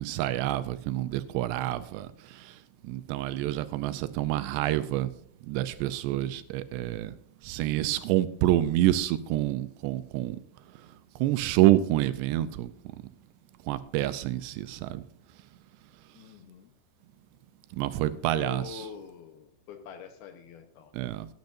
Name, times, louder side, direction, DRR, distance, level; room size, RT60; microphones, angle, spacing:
voice 1, 0.0-2.6 2.8-5.1 5.5-7.1 7.4-10.4 11.2-12.7 13.7-15.0 17.8-18.8 20.9-21.3, right 14 dB, 80° right, 2.6 m, -27 dB
voice 2, 16.2-16.7 18.3-21.1, left 6 dB, 70° left, 2.6 m, -44 dB
17.5 x 10.5 x 2.6 m
omnidirectional pair, 5.1 m